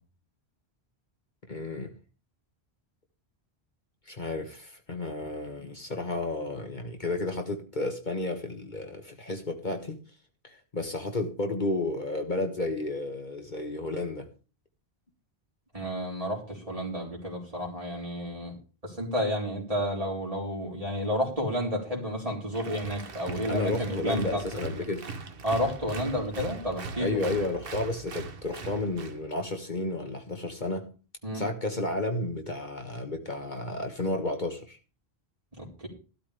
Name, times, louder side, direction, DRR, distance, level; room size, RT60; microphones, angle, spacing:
voice 1, 1.5-1.9 4.1-10.0 10.4-14.3 23.5-25.1 27.0-30.9 31.3-34.8, left 2 dB, 45° left, 1.6 m, -32 dB
voice 2, 15.7-18.5 18.8-24.4 25.4-27.3 31.2-31.4 35.6-35.9, equal, 35° right, 4.2 m, -31 dB
Applause, 22.5-29.2, right 4 dB, 60° right, 1.3 m, -40 dB
14.5 x 12.5 x 3.4 m
omnidirectional pair, 1.1 m